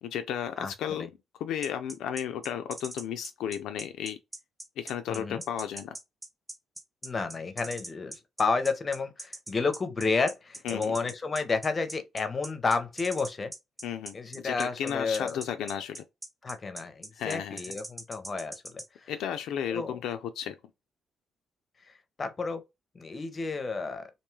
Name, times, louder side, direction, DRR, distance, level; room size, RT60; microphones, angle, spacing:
voice 1, 0.0-1.1 1.4-4.2 4.8-6.0 10.6-11.0 13.8-16.0 17.2-17.6 19.1-20.6, left 9 dB, 85° left, 0.3 m, -34 dB
voice 2, 0.6-1.1 5.1-5.4 7.0-13.5 14.1-15.4 16.4-19.1 19.7-20.0 22.2-22.6 22.9-24.0, left 4 dB, 35° left, 0.6 m, -31 dB
sound 1, 1.6-18.9, right 1 dB, 10° right, 0.5 m, -41 dB
2.5 x 2.3 x 3.1 m
cardioid pair, 90°, 0 cm